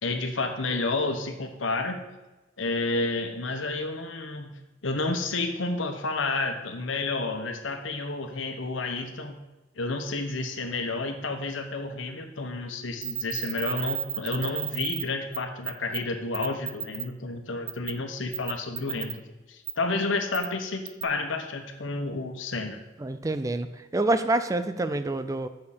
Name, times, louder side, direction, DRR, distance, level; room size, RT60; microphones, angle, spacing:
voice 1, 0.0-2.0 2.6-4.5 4.8-9.4 9.8-19.2 19.5-22.8, left 3 dB, 85° left, 5 dB, 1.2 m, -30 dB
sound 1, 13.0-15.0 15.3-15.4 15.6-16.0 16.3-17.0 17.7-17.9 18.3-19.1 19.7-19.8 20.3-20.5 20.9-21.0, right 12 dB, 55° right, 0.7 m, -32 dB
voice 2, 23.0-25.5, right 2 dB, 15° right, 11 dB, 0.4 m, -27 dB
6.5 x 6.4 x 7.4 m, 1.1 s
head